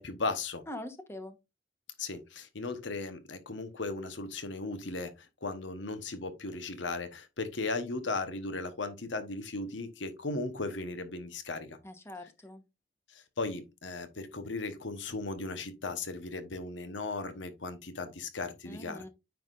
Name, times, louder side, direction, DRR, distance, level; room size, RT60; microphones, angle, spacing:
voice 1, 0.0-0.6 2.0-11.8 13.1-19.1, left 3 dB, 70° left, 1.1 m, -37 dB
voice 2, 0.7-1.4 11.8-12.6 18.6-19.1, left 1 dB, 15° left, 1.1 m, -43 dB
9.5 x 5.8 x 2.5 m
head